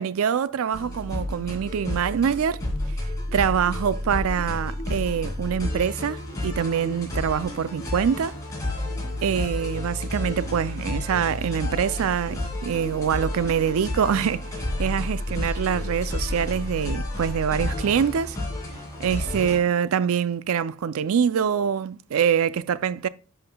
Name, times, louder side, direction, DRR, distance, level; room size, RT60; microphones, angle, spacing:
voice 1, 0.0-2.6 3.3-8.4 9.2-18.4 19.0-23.1, right 7 dB, 70° right, 0.4 m, -25 dB
sound 1, 0.7-19.6, left 1 dB, 15° left, 2.4 m, -31 dB
10.5 x 5.8 x 2.2 m
head